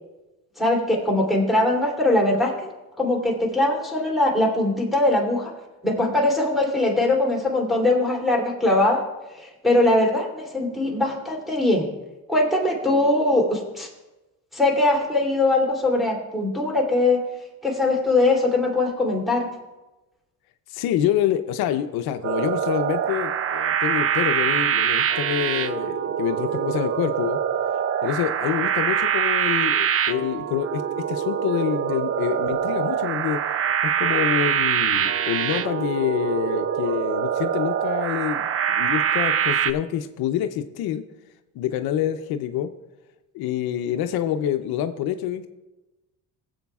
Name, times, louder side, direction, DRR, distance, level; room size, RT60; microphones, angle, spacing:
voice 1, 0.6-2.5 3.0-5.5 5.8-9.0 9.3-11.9 12.3-13.9 14.5-17.2 17.6-19.5, left 2 dB, ahead, -2 dB, 2.9 m, -21 dB
voice 2, 20.7-27.4 28.0-30.8 31.1-33.4 33.8-41.0 41.5-42.7 43.3-45.5, left 10 dB, 85° left, 8 dB, 0.7 m, -26 dB
sound 1, 22.2-39.7, right 8 dB, 40° right, 0.5 m, -24 dB
21.0 x 7.8 x 2.4 m, 1.0 s
cardioid pair, 115°, 36 cm